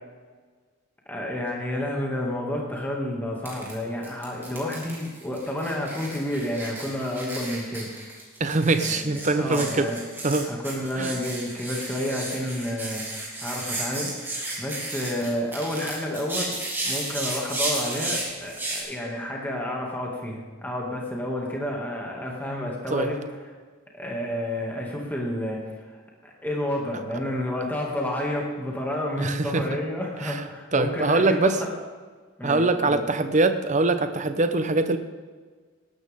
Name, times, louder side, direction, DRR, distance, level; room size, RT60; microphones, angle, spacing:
voice 1, 1.1-7.9 8.8-10.0 10.5-16.6 16.8-23.2 23.9-31.7 32.4-33.0, left 1 dB, 10° left, -2 dB, 2.2 m, -30 dB
sound 1, 3.5-3.7 4.0-18.8, right 2 dB, 10° right, 2.9 m, -33 dB
voice 2, 8.4-9.9 10.2-10.5 11.0-11.1 22.9-23.1 29.2-29.6 30.2-30.4 30.7-31.6 32.4-35.0, right 3 dB, 35° right, 9 dB, 0.8 m, -23 dB
19.0 x 12.0 x 3.7 m, 1.5 s
head